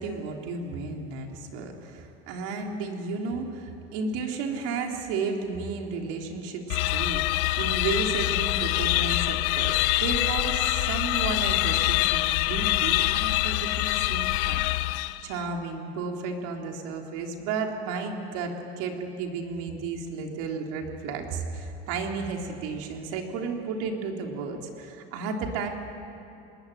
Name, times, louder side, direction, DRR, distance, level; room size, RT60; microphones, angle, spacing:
voice 1, 0.0-25.7, right 4 dB, 75° right, 2 dB, 3.8 m, -33 dB
sound 1, 6.7-15.4, left 19 dB, 80° left, 0.6 m, -25 dB
26.5 x 20.5 x 9.5 m, 2.9 s
cardioid pair, 130°, 31 cm